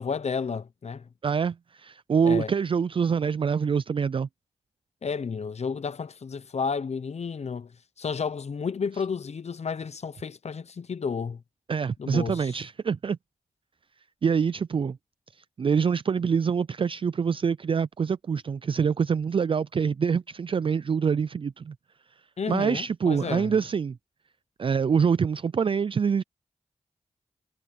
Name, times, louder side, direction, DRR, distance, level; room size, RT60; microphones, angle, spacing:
voice 1, 0.0-1.0 2.2-2.5 5.0-7.7 8.0-11.4 12.0-12.5 22.4-23.5, left 5 dB, 65° left, 0.8 m, -31 dB
voice 2, 1.2-4.3 11.7-13.2 14.2-15.0 15.4-21.7 22.5-24.0 24.6-26.2, right 6 dB, 45° right, 0.4 m, -25 dB
cardioid pair, 55°, 12 cm